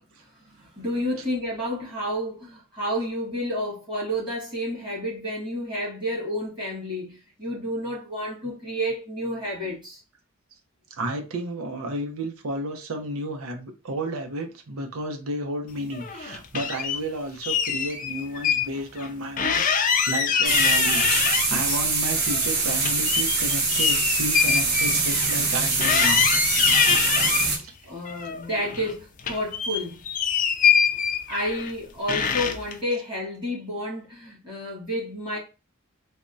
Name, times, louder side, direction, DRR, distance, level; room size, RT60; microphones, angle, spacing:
voice 1, 0.4-10.0 27.3-30.0 31.3-35.4, equal, 25° right, 1.6 m, -30 dB
voice 2, 11.0-26.3 26.7-27.7, right 1 dB, 80° right, 0.6 m, -32 dB
sound 1, 15.9-17.0 17.4-18.7 19.0-19.1 19.4-21.8 22.1-25.5 25.8-27.5 28.1-28.9 29.2-31.7 32.1-32.7, left 7 dB, 40° left, 0.4 m, -24 dB
sound 2, 20.4-27.6, right 4 dB, 50° right, 0.8 m, -24 dB
3.4 x 2.1 x 2.5 m
head